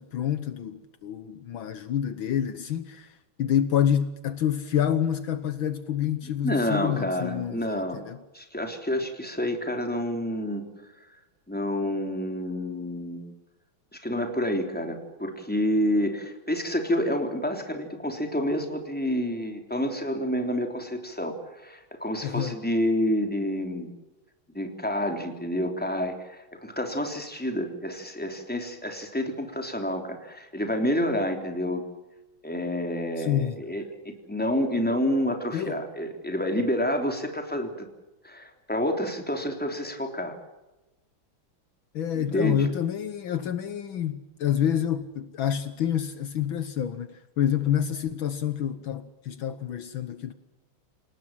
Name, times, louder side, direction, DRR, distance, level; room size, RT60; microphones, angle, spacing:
voice 1, 0.0-8.2 22.2-22.6 33.2-33.6 35.5-35.8 41.9-50.3, left 9 dB, 70° left, 1.8 m, -28 dB
voice 2, 6.4-8.0 8.3-10.6 11.5-13.3 13.9-23.9 24.5-31.8 32.4-37.9 38.2-40.4 42.1-42.6, equal, 5° left, 3.3 m, -29 dB
29.0 x 18.5 x 7.5 m
omnidirectional pair, 2.3 m